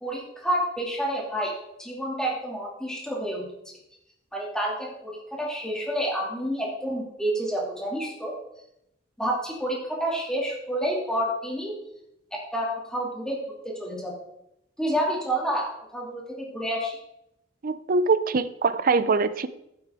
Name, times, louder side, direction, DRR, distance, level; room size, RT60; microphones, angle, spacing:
voice 1, 0.0-1.5 1.8-3.5 4.3-8.3 9.2-11.7 12.3-14.1 14.8-15.7 15.9-16.9, right 1 dB, 5° left, -3 dB, 2.7 m, -29 dB
voice 2, 17.6-19.5, right 4 dB, 50° right, 14 dB, 0.6 m, -23 dB
11.5 x 9.2 x 3.7 m, 0.82 s
head